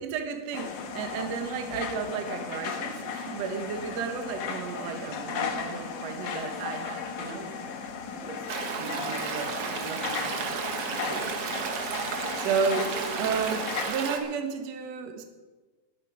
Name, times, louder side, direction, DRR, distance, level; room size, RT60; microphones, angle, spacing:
voice 1, 0.0-7.7 8.1-8.4 8.8-11.3 12.0-15.2, right 5 dB, 60° right, 6 dB, 1.8 m, -33 dB
sound 1, 0.5-13.8, left 6 dB, 65° left, 1.6 m, -36 dB
Stream, 8.5-14.2, right 5 dB, 85° right, 1.3 m, -33 dB
20.0 x 8.6 x 5.1 m, 1.3 s
omnidirectional pair, 4.6 m